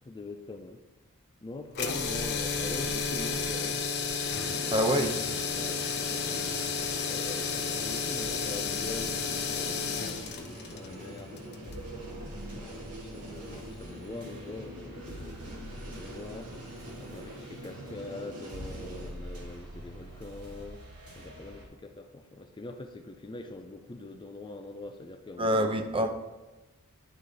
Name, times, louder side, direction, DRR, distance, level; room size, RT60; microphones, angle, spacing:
voice 1, 0.0-0.8 1.4-3.8 4.5-4.8 5.6-6.6 7.1-10.0 10.3-20.8 21.2-25.8, left 2 dB, 20° left, 0.4 m, -44 dB
sound 1, 1.7-11.8, left 5 dB, 50° left, 0.7 m, -32 dB
sound 2, 4.4-19.1, right 1 dB, 90° right, 1.7 m, -44 dB
voice 2, 4.7-5.3 25.4-26.1, equal, 25° right, 0.6 m, -26 dB
sound 3, 6.4-21.7, right 1 dB, 75° right, 2.3 m, -47 dB
9.9 x 4.7 x 4.0 m
head